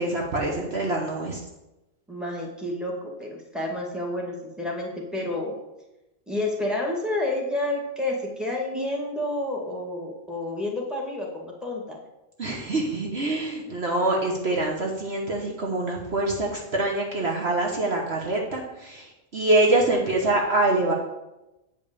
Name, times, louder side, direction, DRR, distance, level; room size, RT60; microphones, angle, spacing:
voice 1, 0.0-1.4 12.4-19.1 19.3-20.9, right 2 dB, 55° right, 0 dB, 1.4 m, -25 dB
voice 2, 2.1-5.6 6.3-12.0, left 1 dB, ahead, -3 dB, 2.0 m, -30 dB
8.9 x 5.3 x 6.8 m, 0.96 s
omnidirectional pair, 1.3 m